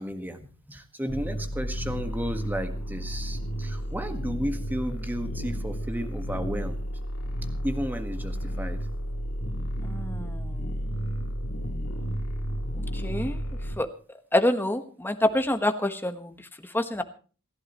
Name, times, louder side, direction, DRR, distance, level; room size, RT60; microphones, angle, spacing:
voice 1, 0.0-6.9 7.6-8.8, equal, 10° right, 7 dB, 1.5 m, -33 dB
sound 1, 1.1-13.8, equal, 90° left, 2.2 m, -32 dB
voice 2, 9.8-10.8 12.8-13.4 13.8-13.9 14.3-17.0, left 1 dB, 10° left, 8 dB, 1.2 m, -27 dB
28.0 x 11.5 x 3.0 m, 0.38 s
head